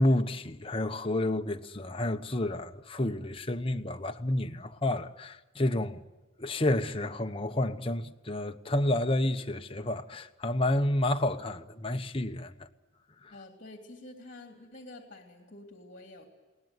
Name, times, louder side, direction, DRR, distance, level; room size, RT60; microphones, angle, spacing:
voice 1, 0.0-6.0 6.4-12.5, left 1 dB, 30° left, 1.0 m, -30 dB
voice 2, 13.3-16.3, left 2 dB, 45° left, 3.1 m, -48 dB
22.0 x 18.5 x 9.3 m
head